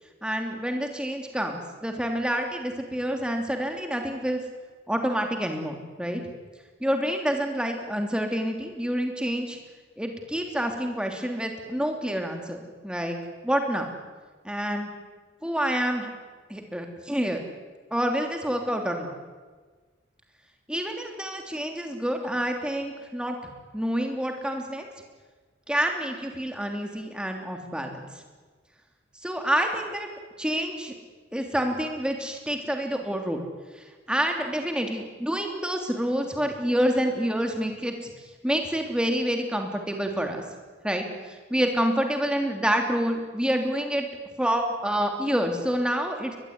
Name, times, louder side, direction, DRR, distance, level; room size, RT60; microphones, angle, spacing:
voice 1, 0.2-4.4 4.9-6.2 6.8-9.6 10.0-13.2 13.4-13.9 14.4-14.9 15.4-16.1 16.5-17.4 17.9-19.2 20.7-24.9 25.7-28.1 29.2-30.1 30.4-30.9 31.3-33.4 34.1-38.1 38.4-40.4 40.8-44.1 44.4-46.4, equal, 5° right, 3 dB, 3.2 m, -28 dB
22.5 x 21.0 x 9.7 m, 1.4 s
head